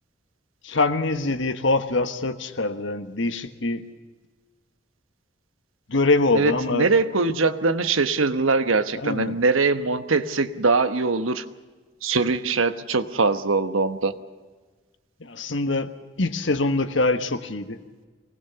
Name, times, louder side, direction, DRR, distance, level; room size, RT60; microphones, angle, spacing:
voice 1, 0.6-3.9 5.9-6.9 8.9-9.4 15.2-17.8, left 2 dB, 70° left, 9 dB, 1.4 m, -24 dB
voice 2, 6.3-11.4 12.0-14.1, right 3 dB, 85° right, 10 dB, 1.2 m, -22 dB
24.0 x 19.0 x 6.9 m, 1.4 s
head